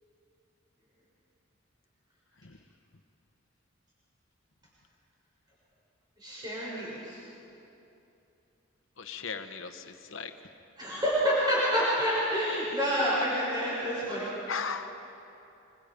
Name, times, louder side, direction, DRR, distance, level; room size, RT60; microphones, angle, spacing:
voice 1, 6.2-7.2 10.8-14.3, equal, 20° right, -8 dB, 6.8 m, -28 dB
voice 2, 9.0-10.3 14.5-14.9, left 5 dB, 70° left, 8 dB, 1.1 m, -37 dB
26.0 x 25.5 x 5.2 m, 2.8 s
head